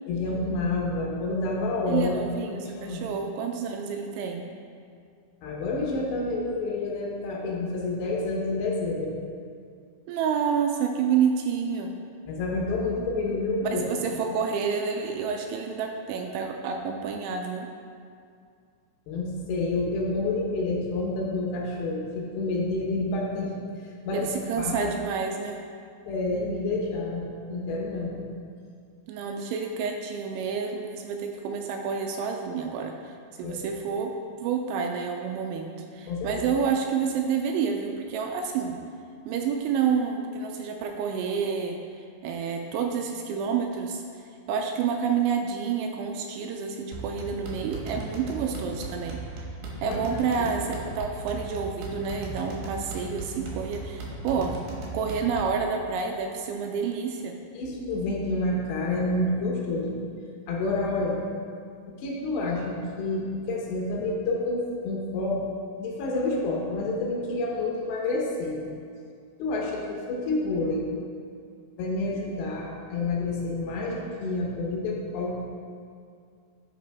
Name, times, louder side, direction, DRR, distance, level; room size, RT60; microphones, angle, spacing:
voice 1, 0.1-2.2 2.6-3.0 5.4-9.1 12.3-13.9 19.1-23.5 24.0-24.9 26.1-28.3 33.4-33.7 36.1-36.4 48.4-48.5 49.8-50.0 50.4-50.5 54.4-54.5 57.6-59.9 60.5-61.2 62.0-65.4 65.8-68.6 69.4-70.9 71.8-75.3, left 2 dB, 75° left, -2 dB, 2.9 m, -29 dB
voice 2, 1.9-4.5 10.1-11.9 13.6-17.7 24.1-25.6 29.1-34.1 34.4-38.8 39.3-41.8 42.2-44.0 44.5-49.5 49.8-54.5 54.9-57.4, right 6 dB, 85° right, 3 dB, 2.8 m, -29 dB
sound 1, 46.9-55.6, right 2 dB, 65° right, 2.8 m, -37 dB
11.5 x 5.9 x 3.4 m, 2.3 s
omnidirectional pair, 5.6 m